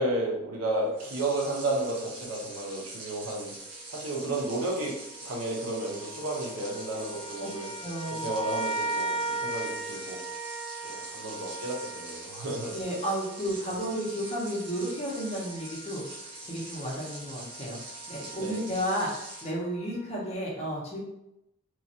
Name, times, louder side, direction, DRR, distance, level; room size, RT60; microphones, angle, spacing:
voice 1, 0.0-3.5 3.9-7.7 8.2-10.2 10.8-12.7 18.4-18.6, right 1 dB, 90° right, -1 dB, 0.8 m, -32 dB
sound 1, 0.9-19.5, right 2 dB, 55° right, 0.8 m, -44 dB
sound 2, 3.2-3.4 4.2-20.3, right 2 dB, 35° right, 1.2 m, -39 dB
voice 2, 7.8-8.3 12.7-19.1 19.4-21.0, equal, 30° left, -4 dB, 0.8 m, -33 dB
3.0 x 2.4 x 2.7 m, 0.85 s
head